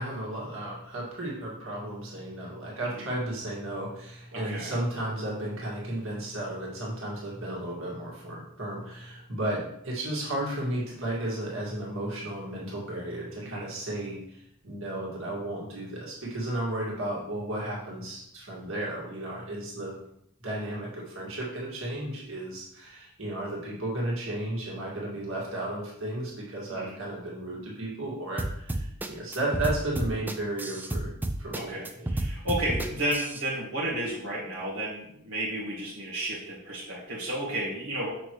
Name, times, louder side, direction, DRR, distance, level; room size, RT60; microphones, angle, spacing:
voice 1, 0.0-19.9 20.4-31.1 31.4-32.1, right 1 dB, 60° right, -4 dB, 2.2 m, -34 dB
voice 2, 4.3-4.7 13.4-13.7 26.7-26.9 31.5-38.1, right 1 dB, 80° right, -7 dB, 1.7 m, -32 dB
sound 1, 28.4-33.4, right 1 dB, 10° right, 0.3 m, -31 dB
6.2 x 6.1 x 3.3 m, 0.74 s
head